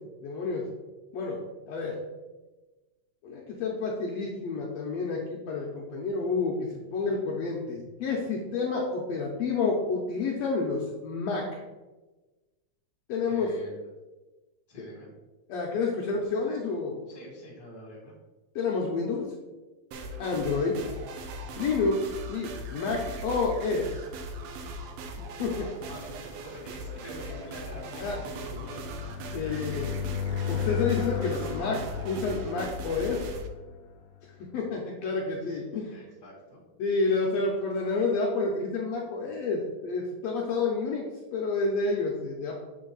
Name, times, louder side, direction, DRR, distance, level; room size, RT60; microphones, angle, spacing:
voice 1, 0.2-0.6 1.1-1.4 1.7-2.0 3.2-11.6 13.1-13.5 15.5-17.0 18.6-19.2 20.2-20.8 21.6-23.9 25.4-25.7 28.0-28.2 29.3-29.9 30.5-33.3 34.5-36.0 36.8-42.5, left 4 dB, 70° left, -2 dB, 1.8 m, -29 dB
voice 2, 13.3-13.8 14.7-15.1 17.1-18.1 25.8-29.3 35.9-36.6, left 1 dB, 20° left, -4 dB, 1.9 m, -45 dB
sound 1, 19.9-33.5, right 1 dB, 80° right, 1.3 m, -39 dB
sound 2, 23.9-34.6, left 8 dB, 85° left, 2.1 m, -37 dB
6.7 x 4.5 x 3.9 m, 1.2 s
omnidirectional pair, 3.4 m